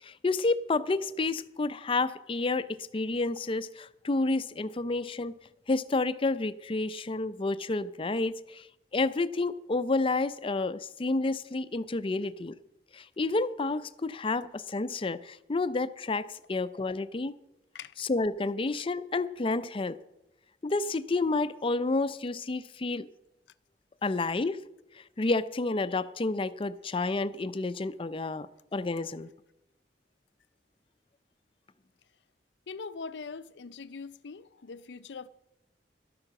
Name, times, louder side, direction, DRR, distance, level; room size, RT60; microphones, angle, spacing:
voice 1, 0.0-2.7 2.9-5.4 5.7-8.7 8.9-12.5 12.9-17.3 18.0-20.0 20.6-23.1 24.0-24.6 25.2-28.5 28.7-29.3, left 3 dB, 30° left, 0.5 m, -30 dB
voice 2, 32.7-35.3, left 4 dB, 85° left, 0.5 m, -42 dB
12.5 x 8.8 x 5.9 m
head